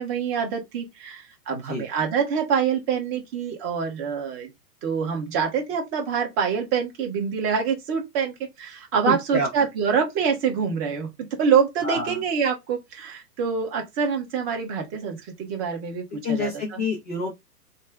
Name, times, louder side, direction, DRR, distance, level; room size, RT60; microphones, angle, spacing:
voice 1, 0.0-4.5 4.8-16.8, right 6 dB, 30° right, 1.2 m, -26 dB
voice 2, 9.1-9.7 11.8-12.2 16.2-17.3, left 2 dB, 10° left, 0.3 m, -27 dB
3.2 x 2.1 x 3.5 m
hypercardioid pair, 130°, 47 cm